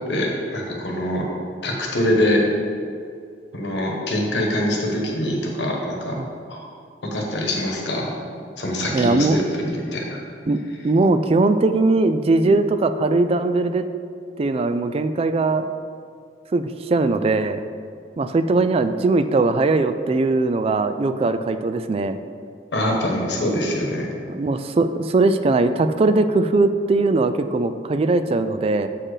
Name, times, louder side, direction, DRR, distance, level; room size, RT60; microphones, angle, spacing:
voice 1, 0.1-1.2 1.6-2.4 3.5-6.2 6.5-6.7 7.1-8.1 8.6-10.1 22.7-24.1, left 1 dB, 80° left, -1 dB, 1.3 m, -24 dB
voice 2, 8.9-9.4 10.5-13.9 14.4-15.7 16.5-17.6 18.2-22.2 24.3-28.9, right 3 dB, 35° right, 10 dB, 0.3 m, -20 dB
7.3 x 4.4 x 4.9 m, 2.3 s
head